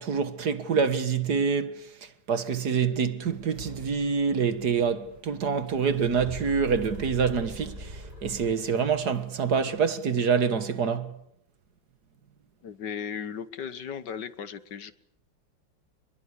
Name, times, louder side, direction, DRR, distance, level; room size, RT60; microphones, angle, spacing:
voice 1, 0.0-1.9 2.3-11.1, right 6 dB, 55° right, 2.0 m, -26 dB
sound 1, 3.2-9.8, right 2 dB, 75° right, 6.3 m, -51 dB
sound 2, 5.9-9.0, right 1 dB, 30° right, 5.1 m, -41 dB
voice 2, 12.6-14.9, left 7 dB, 65° left, 1.8 m, -36 dB
28.5 x 21.5 x 8.4 m
omnidirectional pair, 2.1 m